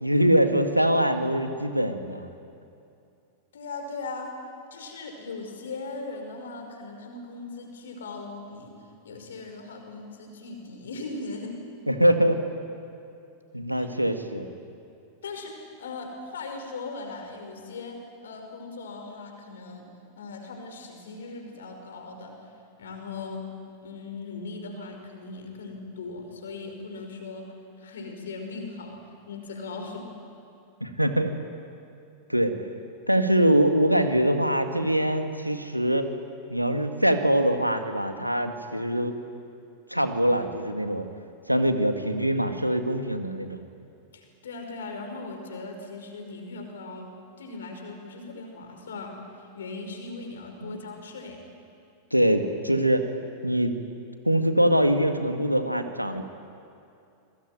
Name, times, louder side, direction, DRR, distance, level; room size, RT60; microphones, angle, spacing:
voice 1, 0.0-2.3 11.9-12.4 13.5-14.5 30.8-31.3 32.3-32.5 33.1-36.1 36.5-39.2 39.9-41.0 41.5-43.6 50.6-50.8 52.1-53.1 53.4-53.8 54.3-56.2, equal, 90° right, 7 dB, 1.9 m, -23 dB
voice 2, 3.5-4.3 4.7-8.8 9.0-11.5 13.8-13.9 15.2-19.9 20.2-22.3 22.8-23.5 23.8-29.0 29.3-30.1 44.1-47.1 47.4-51.4, left 3 dB, 65° left, 4 dB, 5.3 m, -39 dB
27.0 x 21.5 x 9.5 m, 2.5 s
figure-of-eight pair, 90°, 0 cm